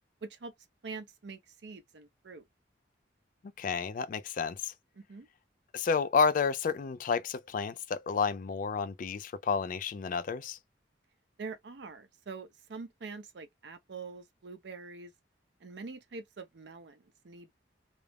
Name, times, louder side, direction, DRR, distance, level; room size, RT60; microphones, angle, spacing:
voice 1, 0.2-0.5 0.8-2.4 5.0-5.3 11.4-15.1 15.6-17.5, right 4 dB, 70° right, 0.5 m, -45 dB
voice 2, 3.6-4.7 5.7-10.6, left 5 dB, 45° left, 0.3 m, -30 dB
2.4 x 2.0 x 3.2 m
head